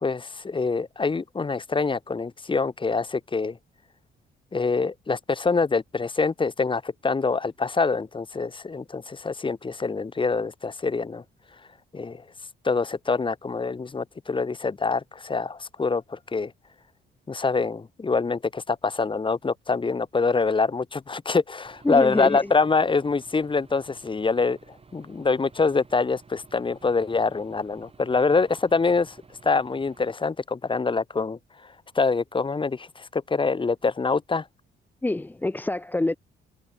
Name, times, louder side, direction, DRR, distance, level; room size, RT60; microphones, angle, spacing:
voice 1, 0.0-3.6 4.5-11.2 11.9-12.2 12.6-16.5 17.3-29.2 29.4-34.5, left 4 dB, 25° left, 1.4 m, -25 dB
Aircraft / Engine, 21.6-30.1, right 4 dB, 30° right, 6.3 m, -53 dB
voice 2, 21.8-22.5 35.0-36.2, left 2 dB, 10° left, 0.5 m, -26 dB
cardioid pair, 90°, 20 cm